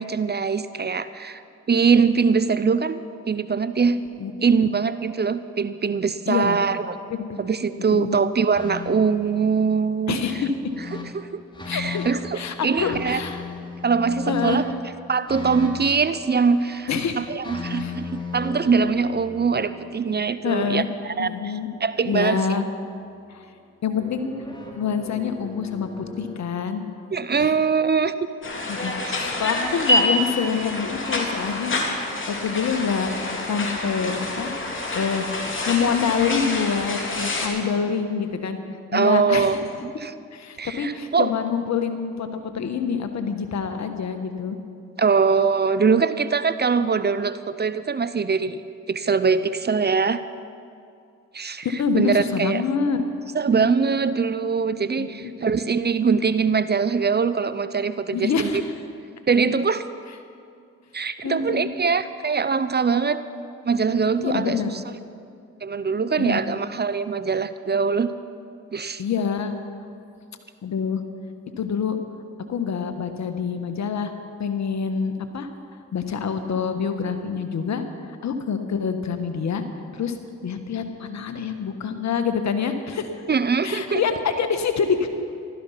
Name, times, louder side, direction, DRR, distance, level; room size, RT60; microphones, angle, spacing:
voice 1, 0.0-1.4 1.7-3.0 3.3-4.0 4.4-7.0 7.4-10.2 10.9-11.4 11.7-13.2 13.8-14.6 15.1-16.9 17.2-21.5 21.8-22.4 27.1-28.1 29.0-29.3 38.9-39.7 40.0-40.1 40.6-41.3 45.0-48.6 48.9-50.2 51.3-51.7 52.0-52.6 53.3-58.5 59.3-59.8 60.9-63.2 63.6-64.6 65.6-68.1 68.7-69.0 83.3-84.0, right 5 dB, 35° right, 13 dB, 0.7 m, -22 dB
voice 2, 6.3-6.6 7.1-7.5 7.9-8.2 10.1-10.5 11.7-12.1 12.3-13.4 14.3-14.6 16.9-17.3 17.8-17.9 20.4-20.9 21.2-21.7 22.0-22.6 23.3-23.4 23.8-24.3 24.8-26.8 27.4-27.5 28.7-33.1 33.5-34.5 34.9-35.2 35.7-38.6 38.9-39.6 40.3-44.6 51.6-53.0 55.0-55.3 58.1-58.6 61.2-61.7 64.2-64.8 66.2-66.4 69.0-69.5 70.6-71.0 71.6-72.0 72.5-74.1 74.4-75.5 75.9-77.8 78.2-79.6 79.9-80.1 80.4-83.1 83.6-85.1, left 6 dB, 60° left, 8 dB, 1.4 m, -26 dB
sound 1, 8.5-9.8 10.3-11.1 11.5-12.2 12.8-14.6 15.3-16.9 17.4-21.5 24.0-26.4, left 4 dB, 15° left, 2.7 m, -37 dB
sound 2, 28.4-37.5, left 1 dB, 40° left, 2.9 m, -27 dB
15.0 x 13.0 x 5.8 m, 2.4 s
supercardioid pair, 50°, 31 cm